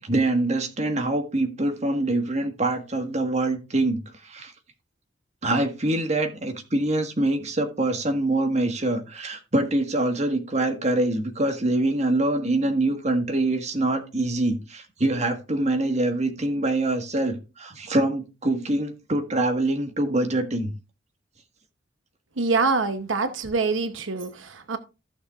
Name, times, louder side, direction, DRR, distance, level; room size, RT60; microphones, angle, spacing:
voice 1, 0.0-4.5 5.4-20.7, right 2 dB, 35° right, 1.5 m, -24 dB
voice 2, 22.4-24.8, right 4 dB, 90° right, 0.9 m, -25 dB
15.0 x 6.6 x 2.4 m
head